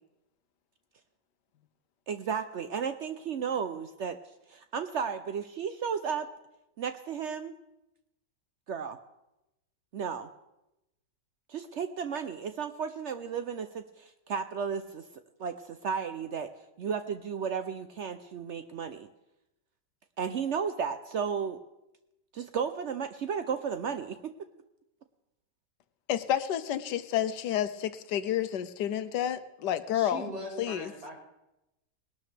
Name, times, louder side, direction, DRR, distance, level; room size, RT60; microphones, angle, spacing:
voice 1, 2.1-4.2 4.5-6.3 6.8-7.5 8.7-9.0 9.9-10.3 11.5-15.0 15.4-16.5 16.8-19.1 20.2-21.6 22.3-24.2, right 6 dB, 75° right, 9 dB, 0.6 m, -33 dB
voice 2, 26.1-30.3 30.6-30.9, left 10 dB, 80° left, 13 dB, 1.3 m, -30 dB
voice 3, 29.9-31.2, right 1 dB, 55° right, -1 dB, 3.0 m, -40 dB
20.0 x 12.0 x 3.4 m, 0.92 s
omnidirectional pair, 1.8 m